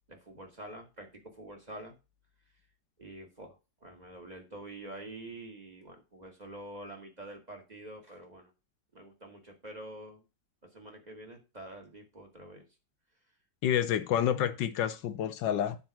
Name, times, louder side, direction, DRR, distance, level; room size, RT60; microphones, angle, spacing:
voice 1, 0.1-2.0 3.0-8.5 8.9-10.2 10.6-12.6, right 1 dB, 20° right, 2.3 m, -47 dB
voice 2, 13.6-15.8, left 10 dB, 75° left, 1.6 m, -29 dB
9.6 x 4.7 x 6.0 m
omnidirectional pair, 2.0 m